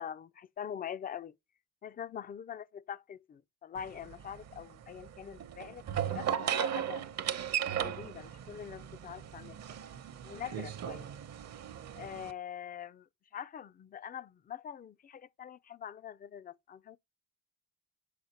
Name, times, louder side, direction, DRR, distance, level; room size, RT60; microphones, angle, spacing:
voice 1, 0.0-1.3 1.8-7.0 7.7-9.6 10.2-11.1 12.0-17.0, left 9 dB, 30° left, 0.4 m, -44 dB
sound 1, 3.8-12.3, right 9 dB, 60° right, 0.8 m, -37 dB
6.5 x 5.7 x 2.9 m
cardioid pair, 90°, 30 cm